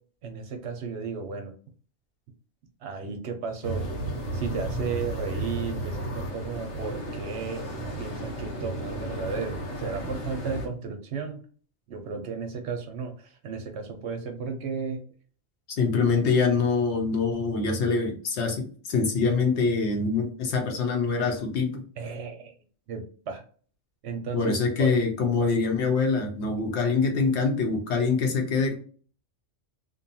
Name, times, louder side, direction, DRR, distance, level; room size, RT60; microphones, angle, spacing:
voice 1, 0.2-1.5 2.8-3.8 4.3-11.4 11.9-15.0 22.0-22.5 22.9-23.4 24.0-25.0, right 5 dB, 65° right, 4 dB, 0.8 m, -34 dB
sound 1, 3.6-10.7, right 1 dB, 90° left, 1.2 m, -33 dB
voice 2, 15.8-21.8 24.3-28.8, left 4 dB, 65° left, 3 dB, 1.0 m, -24 dB
2.6 x 2.2 x 2.6 m, 0.43 s
omnidirectional pair, 1.3 m